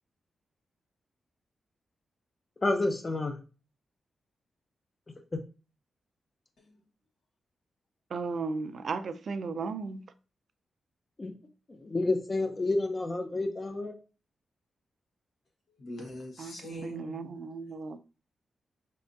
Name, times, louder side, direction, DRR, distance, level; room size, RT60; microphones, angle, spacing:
voice 1, 2.6-3.4 11.2-11.3 11.8-13.9, left 2 dB, 25° left, 0.5 m, -29 dB
voice 2, 8.1-10.0 16.4-18.0, right 4 dB, 50° right, 0.4 m, -35 dB
voice 3, 15.8-17.5, equal, 80° left, 1.6 m, -42 dB
5.2 x 3.4 x 2.6 m
wide cardioid pair, 160°, 0 cm